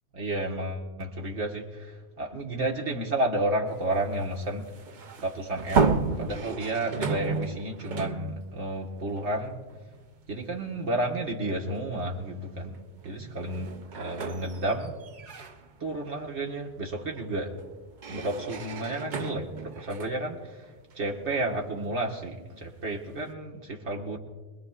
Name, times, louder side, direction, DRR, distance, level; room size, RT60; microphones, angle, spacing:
voice 1, 0.1-4.7 5.2-9.5 10.3-12.8 13.0-14.9 15.4-15.5 15.8-17.6 18.1-20.6 21.0-24.2, right 1 dB, 85° right, -1 dB, 1.8 m, -31 dB
sound 1, 3.7-10.0 10.4-10.6 11.7-11.9 12.3-22.1, right 5 dB, 50° right, 0.7 m, -33 dB
24.5 x 21.5 x 2.4 m, 1.3 s
omnidirectional pair, 1.1 m